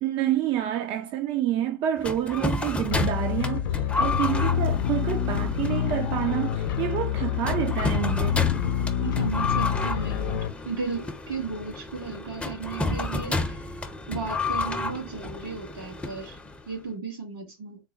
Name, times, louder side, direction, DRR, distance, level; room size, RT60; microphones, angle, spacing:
voice 1, 0.0-8.5, right 11 dB, 45° right, 0.5 m, -28 dB
sound 1, 2.0-16.7, left 3 dB, 10° left, 0.6 m, -31 dB
sound 2, 2.9-10.5, left 10 dB, 70° left, 0.6 m, -27 dB
voice 2, 9.0-13.6 14.1-16.4 16.7-17.8, right 4 dB, 80° right, 2.3 m, -35 dB
3.9 x 2.0 x 4.0 m
hypercardioid pair, 90°, 12 cm